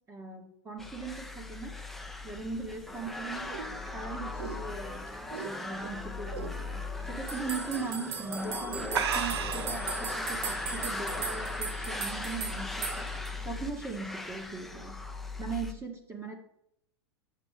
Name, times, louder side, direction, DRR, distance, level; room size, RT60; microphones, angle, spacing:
voice 1, 0.1-1.7 2.2-3.5 3.9-5.0 5.4-15.0 15.4-16.4, right 4 dB, 15° right, 1 dB, 1.5 m, -39 dB
sound 1, 0.8-15.7, left 3 dB, ahead, 0.7 m, -38 dB
sound 2, 2.8-5.9 6.3-6.6 7.0-7.1 7.9-8.1 8.4-8.5 8.9-9.9, right 7 dB, 75° right, 0.8 m, -34 dB
sound 3, 7.3-13.3, right 7 dB, 50° right, 1.0 m, -39 dB
8.1 x 7.2 x 3.6 m, 0.75 s
hypercardioid pair, 110°, 14 cm